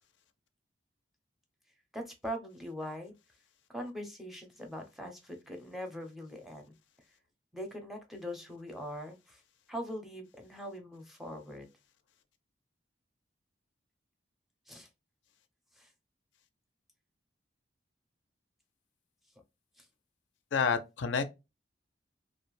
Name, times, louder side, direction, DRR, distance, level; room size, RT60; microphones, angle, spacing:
voice 1, 1.9-3.1 3.7-6.7 7.5-9.4 9.7-11.7 14.7-14.9 15.8-15.9 19.8-19.9, equal, ahead, 0.4 m, -42 dB
voice 2, 20.5-21.2, left 5 dB, 80° left, 0.4 m, -29 dB
2.3 x 2.0 x 3.0 m
head